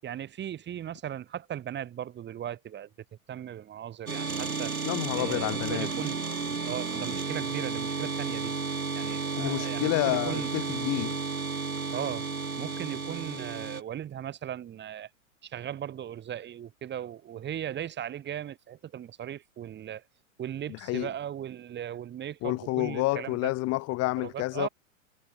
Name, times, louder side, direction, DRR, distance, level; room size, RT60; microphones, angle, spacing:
voice 1, 0.0-2.9 3.3-4.8 5.1-6.2 6.6-8.5 9.0-10.5 11.9-12.3 12.6-15.1 15.4-20.0 20.4-23.5 24.2-24.7, right 10 dB, 25° right, 6.4 m, -37 dB
sound 1, 4.1-13.8, right 4 dB, 85° right, 2.5 m, -32 dB
voice 2, 4.8-5.9 9.4-11.2 20.7-21.1 22.4-24.7, left 20 dB, 35° left, 3.6 m, -29 dB
figure-of-eight pair, 100°, 41 cm